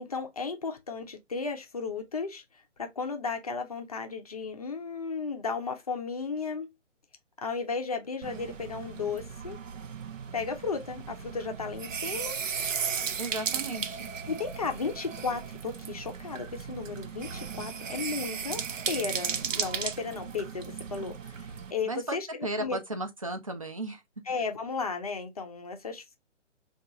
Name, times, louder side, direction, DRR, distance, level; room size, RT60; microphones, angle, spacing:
voice 1, 0.0-2.4 2.8-6.7 7.4-9.6 10.3-12.4 14.3-18.6 18.9-22.8 24.3-26.2, left 5 dB, 30° left, 0.5 m, -34 dB
sound 1, 8.2-21.7, right 7 dB, 90° right, 0.6 m, -36 dB
voice 2, 13.2-14.1 21.8-24.0, right 2 dB, 30° right, 0.4 m, -35 dB
2.8 x 2.3 x 3.4 m
figure-of-eight pair, 150°, 37 cm